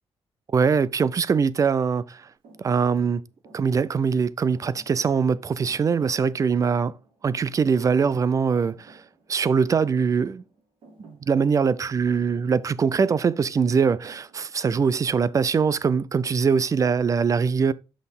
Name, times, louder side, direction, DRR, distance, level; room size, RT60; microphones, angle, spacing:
voice 1, 0.5-2.3 2.6-3.2 3.5-6.9 7.2-9.0 9.3-10.4 11.0-17.7, right 6 dB, 35° right, 0.4 m, -22 dB
Thump thud, 2.4-7.4 7.7-8.3 8.6-14.8, right 3 dB, 70° right, 3.5 m, -55 dB
6.2 x 5.6 x 3.7 m
cardioid pair, 120°, 10 cm